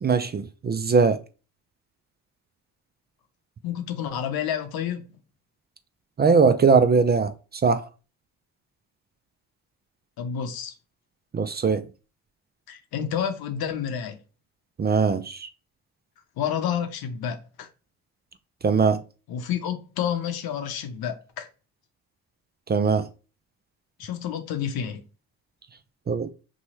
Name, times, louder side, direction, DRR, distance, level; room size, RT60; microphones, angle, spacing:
voice 1, 0.0-1.2 6.2-7.3 7.6-7.8 11.3-11.8 14.8-15.5 18.6-19.0 22.7-23.1 26.1-26.3, right 5 dB, 25° right, 0.4 m, -20 dB
voice 2, 3.6-5.2 10.2-10.7 12.7-14.2 16.4-17.7 19.3-21.5 24.0-25.0, left 8 dB, 70° left, 0.7 m, -29 dB
3.0 x 2.3 x 4.1 m
supercardioid pair, 60°, 38 cm